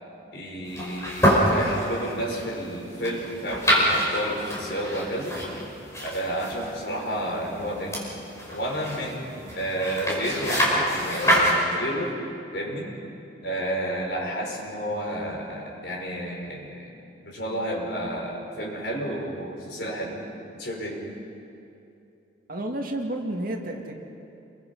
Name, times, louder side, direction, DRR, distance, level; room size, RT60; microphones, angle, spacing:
voice 1, 0.3-5.4 6.0-8.1 8.5-12.2 12.5-12.9 13.4-16.9 17.2-20.2 20.5-21.0, right 1 dB, 60° left, -2 dB, 5.2 m, -31 dB
sound 1, 0.7-11.6, equal, 15° left, 5.4 m, -27 dB
voice 2, 22.5-23.9, right 1 dB, 50° right, 1 dB, 2.2 m, -30 dB
28.5 x 23.0 x 5.5 m, 2.7 s
head